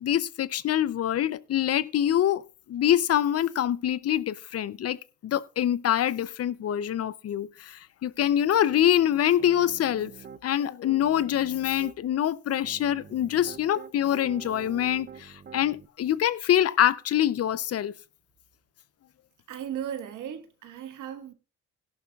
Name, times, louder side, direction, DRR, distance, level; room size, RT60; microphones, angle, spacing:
voice 1, 0.0-2.4 2.7-10.1 10.4-17.9, left 11 dB, 55° left, 0.6 m, -25 dB
Piano, 9.4-10.4 10.9-12.0 12.6-15.9, right 6 dB, 35° right, 0.7 m, -46 dB
voice 2, 19.5-21.3, right 9 dB, 85° right, 1.5 m, -36 dB
16.5 x 11.5 x 2.4 m
cardioid pair, 90°, 30 cm